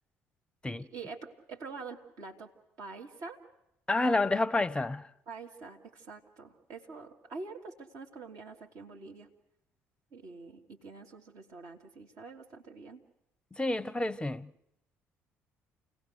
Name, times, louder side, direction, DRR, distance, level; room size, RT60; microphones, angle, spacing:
voice 1, 0.8-2.5 2.8-3.4 5.3-9.3 10.1-13.0, right 4 dB, 55° right, 2.3 m, -46 dB
voice 2, 3.9-5.1 13.5-14.5, left 2 dB, 15° left, 0.7 m, -29 dB
29.0 x 18.0 x 6.5 m
figure-of-eight pair, 50°, 7 cm